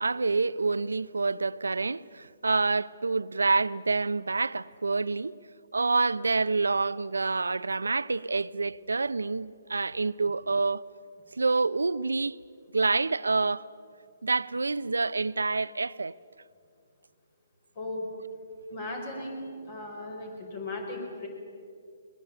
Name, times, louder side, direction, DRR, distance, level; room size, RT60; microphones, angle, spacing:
voice 1, 0.0-5.4 5.7-10.8 11.3-12.4 12.7-13.7 14.2-16.1, right 3 dB, 85° right, 0.6 m, -27 dB
voice 2, 17.8-18.1 18.7-21.3, left 2 dB, 45° left, 5.6 m, -37 dB
21.0 x 20.5 x 8.9 m
hypercardioid pair, 140°, 0 cm